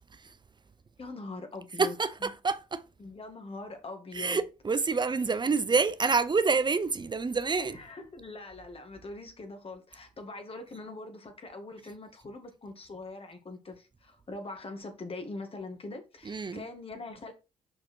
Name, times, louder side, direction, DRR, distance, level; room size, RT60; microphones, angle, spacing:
voice 1, 1.0-1.9 2.2-2.3 3.0-4.4 7.6-17.3, left 2 dB, 35° left, 2.4 m, -42 dB
voice 2, 1.8-2.8 4.1-7.8 16.3-16.6, right 4 dB, 30° right, 0.8 m, -27 dB
6.5 x 5.6 x 4.6 m
supercardioid pair, 70°, 16 cm